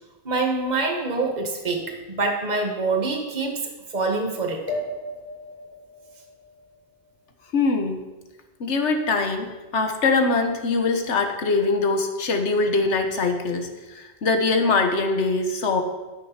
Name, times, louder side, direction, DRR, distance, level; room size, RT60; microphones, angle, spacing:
voice 1, 0.2-4.8, right 3 dB, 40° right, 2 dB, 1.5 m, -26 dB
sound 1, 4.7-7.6, left 1 dB, 55° left, 2.3 m, -36 dB
voice 2, 7.5-8.0 8.6-15.8, left 3 dB, 85° left, 5 dB, 1.5 m, -23 dB
12.0 x 6.4 x 5.9 m, 1.2 s
omnidirectional pair, 1.1 m